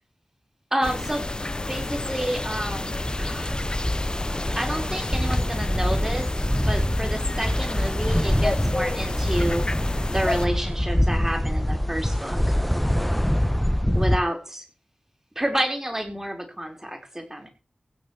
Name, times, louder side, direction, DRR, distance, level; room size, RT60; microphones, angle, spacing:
voice 1, 0.7-1.2 1.7-3.6 4.5-6.3 6.7-9.7 10.1-12.4 13.9-14.6 15.3-17.5, right 1 dB, 15° right, 4 dB, 4.7 m, -29 dB
sound 1, 0.8-10.5, left 2 dB, 35° left, 0.6 m, -30 dB
sound 2, 2.5-14.2, equal, 5° left, 1.3 m, -25 dB
16.5 x 6.3 x 7.3 m, 0.33 s
wide cardioid pair, 60°, 2 cm